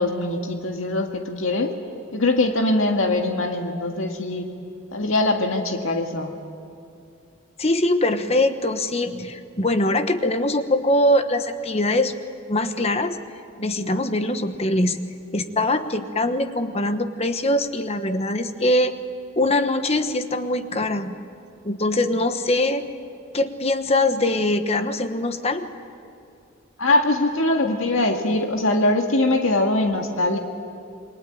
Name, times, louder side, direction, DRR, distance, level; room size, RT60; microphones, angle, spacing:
voice 1, 0.0-1.7 2.1-4.5 4.9-6.3 26.8-30.4, left 2 dB, 80° left, 3 dB, 1.9 m, -22 dB
voice 2, 7.6-13.2 13.6-15.0 15.3-18.9 19.4-21.2 21.6-22.9 23.3-25.6, left 1 dB, 30° left, 9 dB, 1.2 m, -22 dB
28.0 x 22.0 x 9.2 m, 2.5 s
head